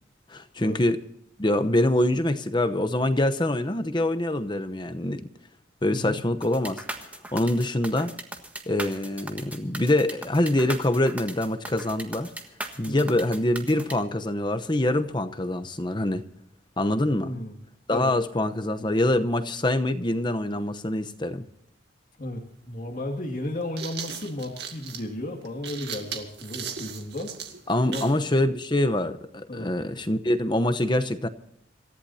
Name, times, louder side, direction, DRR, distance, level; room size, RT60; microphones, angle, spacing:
voice 1, 0.3-1.0 1.4-5.2 5.8-6.8 7.3-8.1 8.7-12.3 12.8-16.2 16.8-17.3 17.9-21.4 27.7-31.3, left 1 dB, 25° left, 9 dB, 0.9 m, -25 dB
sound 1, 6.4-13.9, right 1 dB, 10° right, 1.4 m, -38 dB
voice 2, 12.9-13.2 17.2-17.5 17.9-18.1 22.2-27.3 27.9-28.1 29.5-29.7, left 1 dB, 45° left, -1 dB, 2.3 m, -33 dB
sound 2, 22.4-22.5 23.4-28.2, right 7 dB, 60° right, 2.4 m, -37 dB
27.0 x 15.0 x 2.8 m, 0.69 s
head